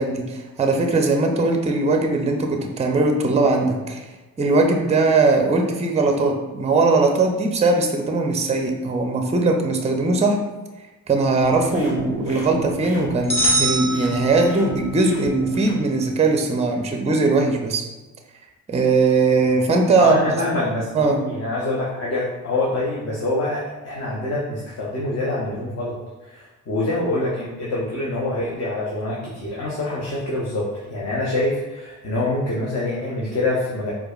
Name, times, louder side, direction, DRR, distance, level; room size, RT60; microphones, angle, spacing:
voice 1, 0.0-4.0 4.4-10.4 11.1-17.8 18.7-20.1 20.9-21.2, right 3 dB, 15° right, 3 dB, 0.5 m, -20 dB
sound 1, 11.4-15.8, right 1 dB, 70° left, 0.8 m, -33 dB
sound 2, 13.3-14.9, right 1 dB, 15° left, 1.1 m, -23 dB
voice 2, 20.0-20.9 21.2-25.9 26.3-33.9, left 2 dB, 40° left, -5 dB, 0.8 m, -25 dB
4.4 x 2.2 x 2.4 m, 1.1 s
hypercardioid pair, 40°, 41 cm